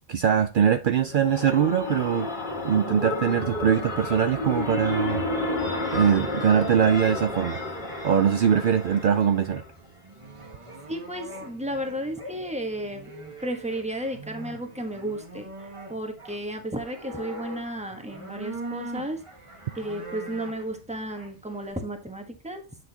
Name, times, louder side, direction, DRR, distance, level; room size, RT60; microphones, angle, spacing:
voice 1, 0.1-2.3 2.6-5.3 5.9-7.6 8.0-9.6, right 8 dB, 60° right, 0.7 m, -22 dB
sound 1, 0.8-9.7, left 2 dB, 45° left, 1.9 m, -31 dB
sound 2, 5.8-21.7, right 1 dB, 30° right, 1.6 m, -43 dB
voice 2, 10.9-13.1 13.4-15.5 15.9-19.2 19.7-22.6, right 1 dB, 5° right, 1.3 m, -33 dB
9.2 x 6.0 x 2.9 m
omnidirectional pair, 1.0 m